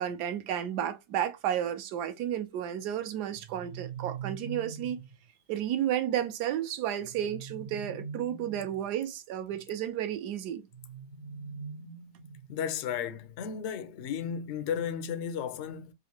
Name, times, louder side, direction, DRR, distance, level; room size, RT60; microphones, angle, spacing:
voice 1, 0.0-5.0 5.5-10.7, right 10 dB, 75° right, 1.2 m, -32 dB
sound 1, 3.3-5.1 7.0-8.9 10.7-12.6, right 5 dB, 55° right, 0.9 m, -42 dB
voice 2, 12.5-15.9, left 8 dB, 75° left, 0.6 m, -34 dB
3.8 x 2.5 x 2.9 m
omnidirectional pair, 1.8 m